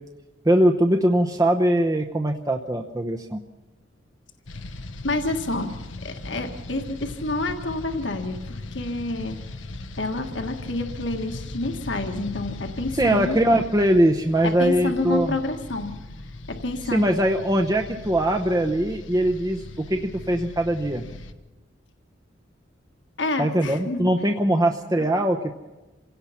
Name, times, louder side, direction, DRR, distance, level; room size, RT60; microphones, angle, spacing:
voice 1, 0.4-3.4 12.9-15.4 16.9-21.0 23.4-25.5, right 1 dB, 20° right, 4 dB, 0.8 m, -21 dB
sound 1, 4.5-21.3, left 2 dB, 90° left, 1.1 m, -38 dB
voice 2, 5.0-5.7 6.0-9.4 10.0-13.4 14.4-15.9 16.5-17.1 23.2-24.1 25.0-25.1, left 2 dB, 70° left, 4 dB, 1.6 m, -28 dB
27.0 x 17.0 x 5.8 m, 1.1 s
head